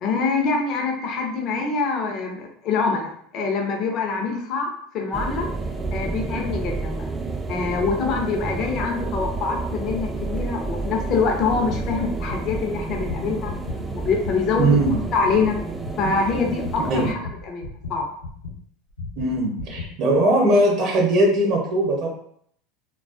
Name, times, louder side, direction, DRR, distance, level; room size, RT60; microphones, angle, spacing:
voice 1, 0.0-5.5 5.9-7.0 7.5-13.5 13.9-14.8 15.1-15.6 16.0-17.2 17.5-18.1, left 4 dB, 50° left, 2 dB, 0.6 m, -25 dB
sound 1, 5.1-17.1, right 3 dB, 15° right, 0.3 m, -30 dB
sound 2, 11.7-18.6 19.0-19.9, left 3 dB, 90° left, 0.9 m, -35 dB
voice 2, 14.6-15.0 16.8-17.1 19.2-22.1, right 1 dB, 55° right, -1 dB, 0.6 m, -20 dB
2.3 x 2.3 x 2.4 m, 0.66 s
hypercardioid pair, 90°, 0 cm